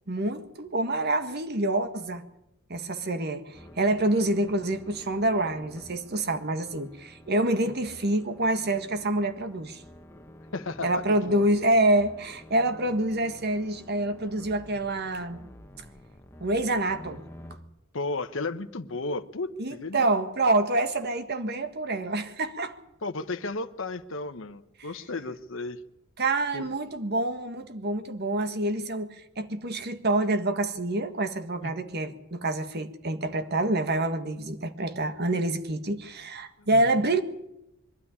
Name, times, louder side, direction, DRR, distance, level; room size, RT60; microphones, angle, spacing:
voice 1, 0.1-2.2 2.7-9.8 10.8-15.4 16.4-17.2 19.6-22.7 26.2-37.2, right 2 dB, 50° right, 1.6 m, -27 dB
sound 1, 3.5-17.6, left 1 dB, 10° left, 1.4 m, -49 dB
voice 2, 10.5-11.4 17.9-20.1 23.0-25.8 26.5-26.6 31.6-31.7 36.6-37.0, left 3 dB, 65° left, 1.0 m, -34 dB
23.0 x 12.5 x 9.9 m
head